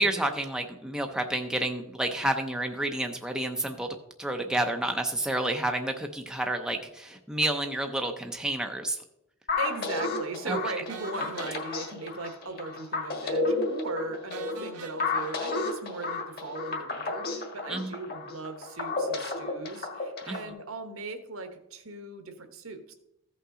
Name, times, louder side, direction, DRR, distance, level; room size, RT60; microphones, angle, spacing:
voice 1, 0.0-3.9 4.2-9.0 10.5-10.6 17.7-17.9 20.3-20.4, right 1 dB, 5° right, 4 dB, 0.5 m, -29 dB
sound 1, 9.5-20.5, left 3 dB, 45° left, 1.6 m, -32 dB
voice 2, 9.6-22.9, right 3 dB, 65° right, 8 dB, 1.0 m, -38 dB
sound 2, 10.9-12.8 13.1-13.2 13.5-13.6 14.3-16.6, right 5 dB, 80° right, 1.2 m, -46 dB
14.5 x 5.5 x 3.7 m, 0.83 s
head